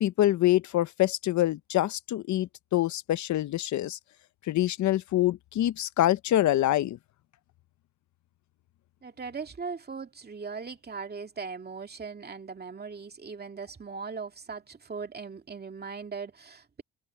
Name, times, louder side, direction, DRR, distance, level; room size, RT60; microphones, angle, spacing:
voice 1, 0.0-4.0 4.5-7.0, left 14 dB, 70° left, 0.8 m, -25 dB
voice 2, 9.0-16.8, right 5 dB, 30° right, 2.3 m, -39 dB
open air
cardioid pair, 90°, 30 cm